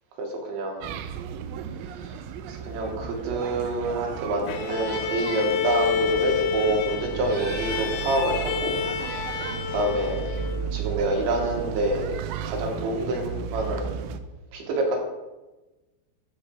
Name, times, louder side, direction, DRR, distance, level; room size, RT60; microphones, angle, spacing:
voice 1, 0.2-0.9 1.9-8.8 9.2-9.4 9.7-10.3 10.7-12.2 12.4-13.9 14.5-15.0, right 2 dB, 70° right, 1 dB, 3.3 m, -27 dB
sound 1, 0.8-14.2, right 7 dB, 85° right, 2.7 m, -34 dB
Bowed string instrument, 4.5-10.8, left 8 dB, 80° left, 2.8 m, -29 dB
13.0 x 7.4 x 3.4 m, 1.1 s
omnidirectional pair, 6.0 m